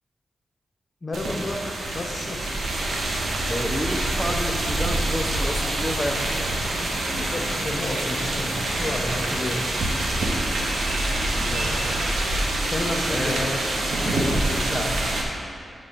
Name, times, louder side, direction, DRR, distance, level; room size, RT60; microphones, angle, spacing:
voice 1, 1.0-1.6 1.9-2.4 7.1-9.9 11.5-12.2 12.6-14.9, left 2 dB, 40° left, 1 dB, 1.0 m, -32 dB
sound 1, 1.1-15.2, right 1 dB, 85° right, 1.0 m, -26 dB
voice 2, 3.5-6.4 11.2-11.9 12.2-12.3 13.1-13.5 14.6-14.9, equal, ahead, 1 dB, 0.8 m, -30 dB
7.1 x 5.4 x 6.6 m, 2.3 s
cardioid pair, 60°, 0 cm